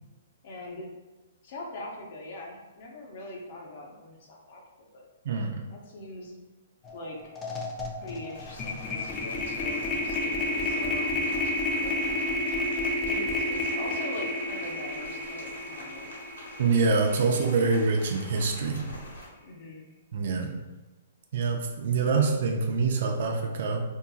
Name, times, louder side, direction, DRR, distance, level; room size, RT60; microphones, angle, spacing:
voice 1, 0.4-0.9 1.4-4.6 4.9-5.1 5.7-6.4 6.9-7.3 8.0-11.3 11.8-12.2 13.1-16.1 17.2-17.8 19.4-19.8, left 1 dB, 55° left, 0 dB, 0.7 m, -42 dB
voice 2, 5.2-5.6 16.6-18.8 20.1-20.5 21.3-23.8, right 4 dB, 60° right, 2 dB, 0.4 m, -25 dB
sound 1, 6.8-7.0 7.3-17.6, left 1 dB, 20° left, 0.4 m, -31 dB
Rain, 8.3-19.3, left 1 dB, 80° left, 1.1 m, -45 dB
2.7 x 2.5 x 2.3 m, 1.1 s
hypercardioid pair, 140°, 0 cm